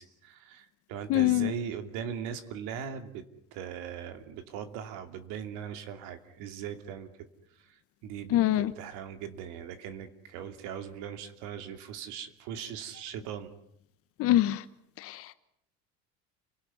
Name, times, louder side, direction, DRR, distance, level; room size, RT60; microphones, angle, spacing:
voice 1, 0.0-3.2 3.5-7.1 7.7-7.8 8.0-13.5, right 8 dB, 70° right, 8 dB, 2.7 m, -39 dB
voice 2, 1.1-1.5 8.3-8.7 14.2-14.6 15.0-15.3, left 14 dB, 50° left, 12 dB, 1.3 m, -24 dB
30.0 x 18.5 x 9.5 m, 0.73 s
cardioid pair, 150°, 30 cm